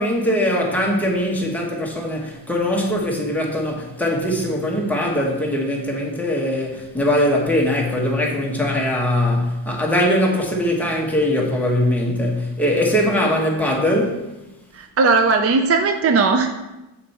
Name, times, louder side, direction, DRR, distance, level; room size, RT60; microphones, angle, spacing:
voice 1, 0.0-14.3, left 1 dB, 5° left, 1.0 m, -21 dB
voice 2, 14.7-16.5, right 4 dB, 35° right, 0.4 m, -17 dB
7.3 x 4.5 x 4.2 m
wide cardioid pair, 170°, 48 cm